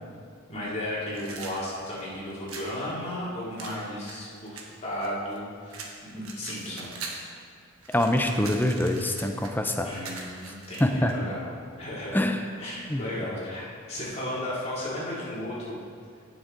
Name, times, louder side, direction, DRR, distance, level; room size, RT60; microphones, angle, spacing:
voice 1, 0.5-5.9 6.1-6.9 9.8-11.5 11.8-12.1 12.6-15.8, left 1 dB, 30° left, -8 dB, 2.9 m, -34 dB
sound 1, 1.1-2.7 3.6-5.4 5.7-7.3 7.6-11.2, right 4 dB, 80° right, 1.4 m, -42 dB
voice 2, 7.9-9.9 10.8-11.1 12.1-12.4 12.9-13.0, left 1 dB, 10° left, 5 dB, 0.6 m, -24 dB
17.0 x 6.3 x 3.9 m, 2.2 s
head